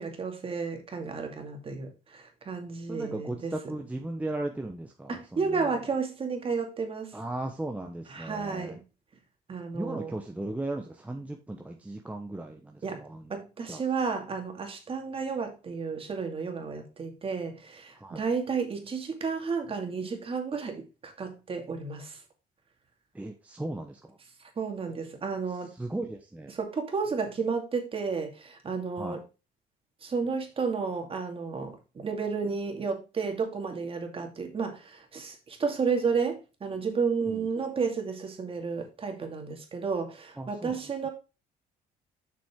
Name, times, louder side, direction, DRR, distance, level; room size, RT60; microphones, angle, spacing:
voice 1, 0.0-3.5 5.1-7.1 8.1-8.8 9.5-10.1 12.8-13.0 13.3-22.2 24.6-25.7 26.5-29.2 30.0-41.1, right 5 dB, 35° right, 2.3 m, -32 dB
voice 2, 2.9-5.8 7.1-8.8 9.7-13.3 13.7-13.8 17.9-18.2 23.1-24.2 25.7-26.5 29.0-29.2 37.3-37.5 40.4-40.8, right 2 dB, 10° right, 1.0 m, -37 dB
7.4 x 6.1 x 3.7 m
cardioid pair, 110°, 17 cm